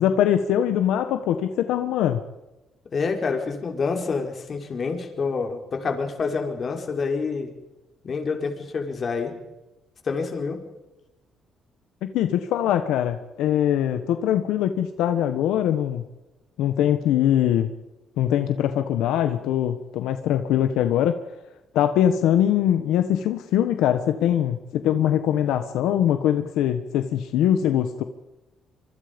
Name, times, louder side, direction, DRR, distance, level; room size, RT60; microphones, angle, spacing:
voice 1, 0.0-2.2 12.1-16.0 16.6-17.7 18.2-21.2 21.7-28.0, left 10 dB, 90° left, 9 dB, 1.3 m, -22 dB
voice 2, 2.9-7.5 8.0-9.3 10.0-10.6, left 4 dB, 45° left, 4 dB, 4.6 m, -27 dB
25.5 x 24.0 x 5.3 m, 1.0 s
cardioid pair, 90°, 0 cm